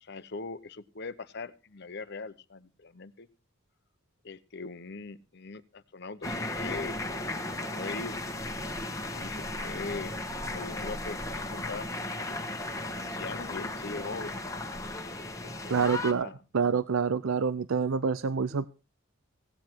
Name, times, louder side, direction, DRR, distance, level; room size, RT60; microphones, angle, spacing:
voice 1, 0.0-3.3 4.2-7.0 7.7-8.2 9.1-11.9 12.1-12.4 12.9-14.4 15.2-15.8 16.2-16.4, left 4 dB, 55° left, 13 dB, 0.9 m, -41 dB
sound 1, 6.2-16.1, left 2 dB, 15° left, 1.3 m, -35 dB
voice 2, 15.7-18.7, right 5 dB, 80° right, 15 dB, 0.6 m, -27 dB
16.5 x 9.7 x 4.5 m, 0.31 s
head